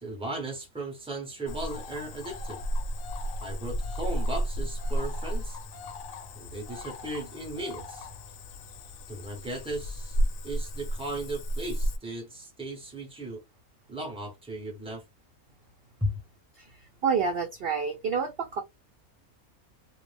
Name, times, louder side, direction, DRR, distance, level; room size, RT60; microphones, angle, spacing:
voice 1, 0.0-2.6 3.4-5.6 6.3-8.1 9.1-10.2 10.4-13.4 13.9-15.0 16.0-16.1, right 1 dB, 5° right, 0.5 m, -36 dB
Cricket / Frog, 1.5-12.0, equal, 70° left, 0.9 m, -33 dB
voice 2, 16.6-18.6, right 5 dB, 75° right, 0.5 m, -29 dB
2.4 x 2.0 x 3.2 m
omnidirectional pair, 1.5 m